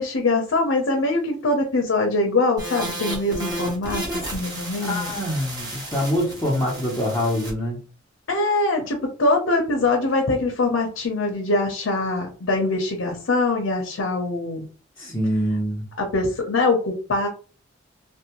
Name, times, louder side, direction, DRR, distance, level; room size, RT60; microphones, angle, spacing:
voice 1, 0.0-5.1 8.3-14.7 16.0-17.3, left 2 dB, 80° left, 0.6 m, -23 dB
sound 1, 2.6-7.5, right 1 dB, 20° right, 0.8 m, -32 dB
voice 2, 4.8-7.8 15.0-15.9, equal, 10° left, 0.7 m, -25 dB
2.6 x 2.1 x 2.9 m
head